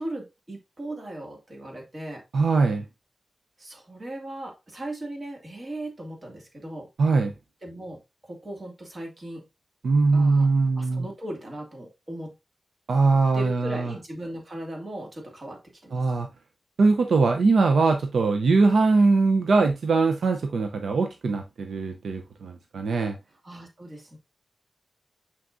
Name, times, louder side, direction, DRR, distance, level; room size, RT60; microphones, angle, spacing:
voice 1, 0.0-2.2 3.6-6.9 7.6-9.5 10.1-10.5 10.8-12.3 13.3-16.1 23.4-24.2, right 1 dB, 40° right, 2.3 m, -38 dB
voice 2, 2.3-2.8 7.0-7.3 9.8-11.1 12.9-13.9 15.9-16.3 16.8-23.2, right 3 dB, 85° right, 0.7 m, -21 dB
6.1 x 6.0 x 2.6 m
wide cardioid pair, 110°, 0 cm